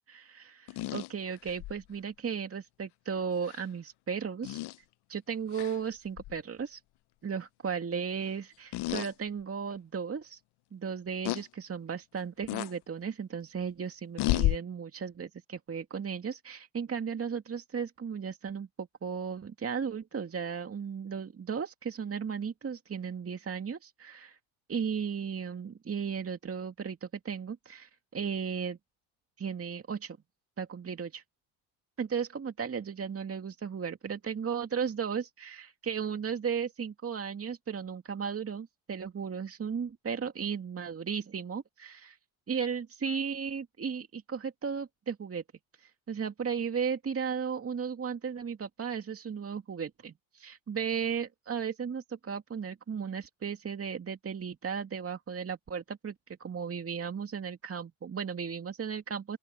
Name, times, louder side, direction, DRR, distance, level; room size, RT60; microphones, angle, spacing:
voice 1, 0.0-4.6 5.1-6.8 7.2-10.4 10.7-24.4 24.7-28.8 29.4-30.2 30.6-31.2 32.0-42.2 42.5-45.4 45.8-56.1 56.4-59.4, right 6 dB, 30° right, 2.3 m, -35 dB
sound 1, 0.7-1.8 3.4-3.6 4.4-4.8 5.5-5.8 6.2-6.4 8.7-9.1 9.7-9.8 11.2-11.4 12.5-12.7 14.2-14.6, left 17 dB, 55° left, 0.9 m, -31 dB
open air
supercardioid pair, 80°, 48 cm